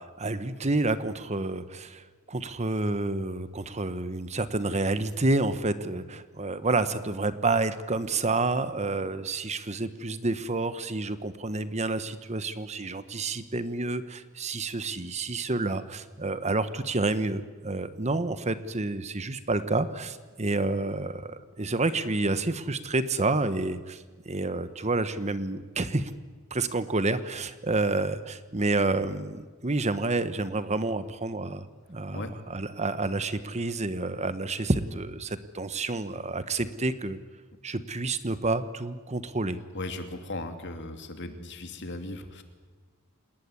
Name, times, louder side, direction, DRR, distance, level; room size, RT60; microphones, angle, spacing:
voice 1, 0.0-26.1 26.5-37.2 37.6-39.6, right 2 dB, 30° right, 12 dB, 1.1 m, -29 dB
voice 2, 39.7-42.4, left 2 dB, 55° left, 7 dB, 2.8 m, -37 dB
28.5 x 19.0 x 9.8 m, 1.4 s
head